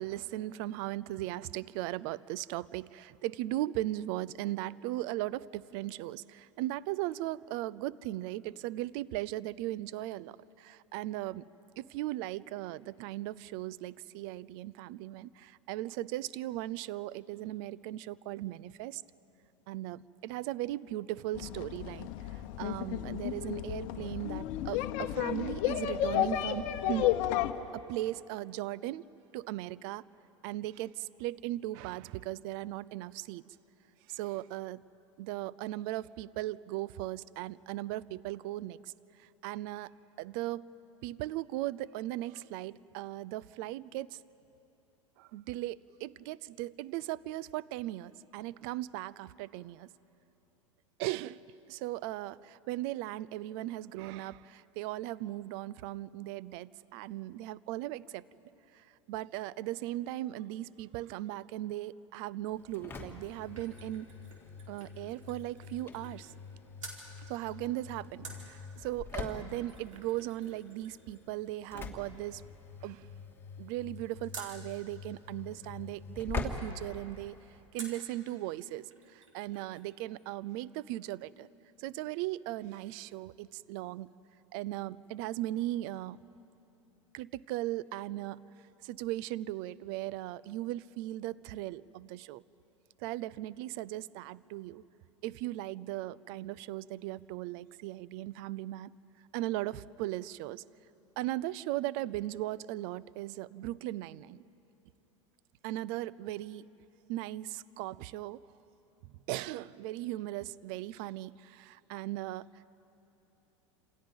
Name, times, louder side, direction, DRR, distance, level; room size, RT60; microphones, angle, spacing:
voice 1, 0.0-11.4 11.8-19.0 19.7-27.1 27.7-29.0 29.3-30.1 30.4-33.4 34.1-34.8 35.2-39.9 40.2-40.7 41.0-44.2 45.2-49.9 51.0-51.4 51.7-58.2 58.7-64.1 64.7-66.3 67.3-72.4 72.8-73.1 73.6-77.4 77.7-81.5 81.8-84.1 84.5-86.2 87.1-88.4 88.8-92.4 93.0-94.8 95.2-98.9 99.3-100.6 101.2-104.4 105.6-106.7 107.1-108.4 109.0-112.7, right 15 dB, 50° right, 19 dB, 0.6 m, -38 dB
sound 1, 21.3-27.5, left 12 dB, 50° left, 1.1 m, -32 dB
Engine / Slam, 62.5-77.6, left 5 dB, 15° left, 2.7 m, -45 dB
sound 2, 62.9-66.5 66.8-67.1 68.2-74.6 77.8-78.1 78.6-78.7 78.9-79.9 80.2-80.3, right 4 dB, 80° right, 4.4 m, -52 dB
28.5 x 27.5 x 5.4 m, 2.9 s
figure-of-eight pair, 90°, 16 cm